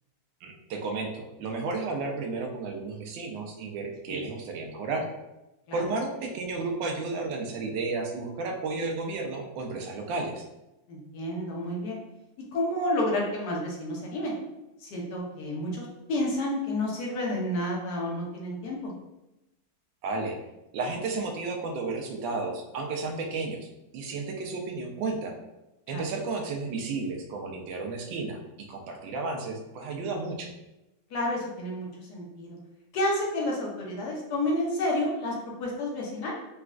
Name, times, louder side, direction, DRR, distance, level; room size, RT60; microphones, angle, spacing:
voice 1, 0.4-5.1 5.7-10.4 20.0-20.4 20.7-23.7 23.9-25.3 25.9-28.4 28.7-30.5, right 3 dB, 80° right, 2 dB, 1.3 m, -32 dB
voice 2, 10.9-12.0 12.5-14.3 14.8-18.9 25.9-26.1 31.1-32.6 32.9-35.3 35.6-36.3, left 1 dB, 65° left, -2 dB, 1.2 m, -30 dB
4.1 x 2.3 x 2.4 m, 0.95 s
omnidirectional pair, 2.1 m